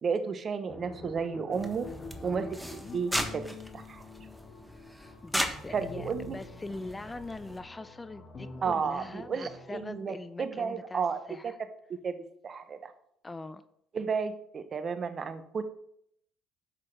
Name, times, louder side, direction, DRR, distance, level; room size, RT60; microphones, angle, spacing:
voice 1, 0.0-1.9 2.2-3.5 3.7-4.0 5.7-6.3 8.6-11.5 12.0-12.9 13.9-15.6, right 5 dB, 45° right, 11 dB, 0.9 m, -33 dB
sound 1, 0.7-9.9, left 4 dB, 40° left, 1.6 m, -47 dB
sound 2, 1.5-7.6, equal, ahead, 1.4 m, -38 dB
voice 2, 2.2-2.5 5.2-11.6 13.2-13.6, left 2 dB, 20° left, 14 dB, 0.6 m, -42 dB
10.5 x 7.7 x 3.4 m, 0.72 s
hypercardioid pair, 60°, 0 cm